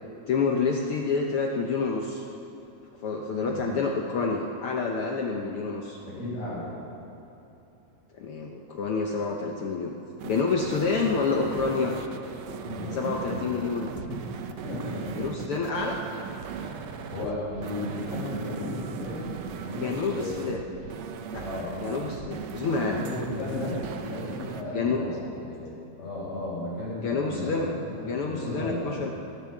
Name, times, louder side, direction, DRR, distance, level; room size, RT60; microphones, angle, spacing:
voice 1, 0.3-2.2 3.0-6.0 8.1-9.9 10.2-11.9 12.9-13.9 15.2-16.0 19.8-20.6 21.3-21.4 21.8-23.0 24.7-25.0 27.0-27.7 28.0-29.1, left 4 dB, 65° left, 1 dB, 1.4 m, -28 dB
voice 2, 6.1-6.7 12.6-13.6 14.0-14.2 14.6-15.3 16.8-19.3 19.6-20.6 21.4-21.8 22.9-28.0 28.3-28.9, left 2 dB, 45° left, -11 dB, 6.1 m, -35 dB
sound 1, 10.2-24.6, right 7 dB, 70° right, 1.9 m, -38 dB
18.0 x 11.0 x 7.2 m, 2.9 s
omnidirectional pair, 3.5 m